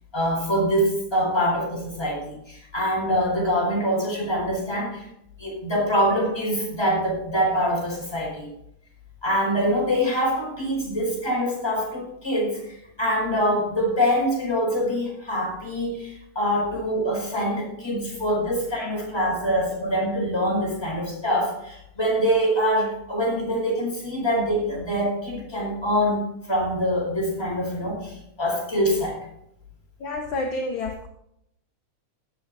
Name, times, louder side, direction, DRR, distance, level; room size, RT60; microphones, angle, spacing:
voice 1, 0.1-5.1 5.4-8.5 9.2-29.2, equal, 10° left, -3 dB, 4.8 m, -24 dB
voice 2, 30.0-31.1, left 2 dB, 60° left, 3 dB, 1.4 m, -30 dB
17.5 x 7.5 x 4.1 m, 0.75 s
omnidirectional pair, 3.3 m